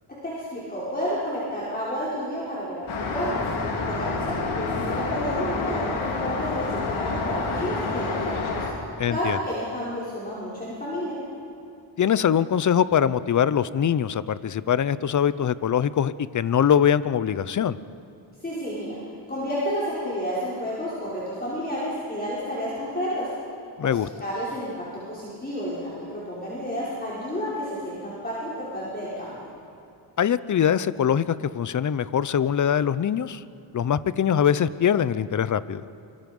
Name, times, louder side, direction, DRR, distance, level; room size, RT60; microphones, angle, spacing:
voice 1, 0.2-3.4 3.9-8.7 9.1-11.2 18.4-19.0 19.3-23.3 24.2-29.4, equal, 20° left, -9 dB, 5.5 m, -30 dB
Traffic noise roadway noise, 2.9-8.7, left 3 dB, 75° left, 3.3 m, -28 dB
voice 2, 9.0-9.4 12.0-17.8 23.8-24.1 30.2-33.4 33.7-35.8, left 8 dB, 40° left, 16 dB, 0.7 m, -23 dB
27.0 x 25.0 x 5.4 m, 2.6 s
cardioid pair, 115°, 48 cm